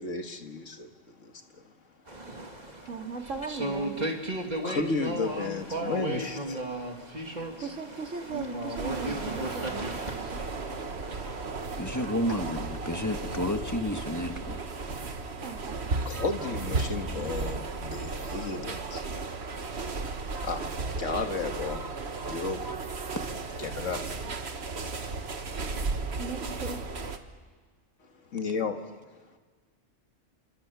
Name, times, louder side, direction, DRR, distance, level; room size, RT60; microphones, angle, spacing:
voice 1, 0.0-1.7 2.2-2.4 4.6-7.7 16.0-20.6 21.0-22.0 22.3-22.8 23.6-24.3 24.7-24.9 25.8-26.2 28.0-28.8, left 4 dB, 80° left, 2.1 m, -35 dB
sound 1, 2.1-12.4, right 1 dB, 35° right, 2.4 m, -36 dB
voice 2, 2.9-4.1 7.6-9.9 10.2-10.4 15.4-15.9 26.2-26.9, right 4 dB, 80° right, 2.9 m, -37 dB
sound 2, 8.8-27.2, right 3 dB, 60° right, 1.6 m, -35 dB
voice 3, 11.8-15.1, left 1 dB, 15° left, 1.4 m, -32 dB
28.0 x 26.5 x 7.1 m
omnidirectional pair, 1.3 m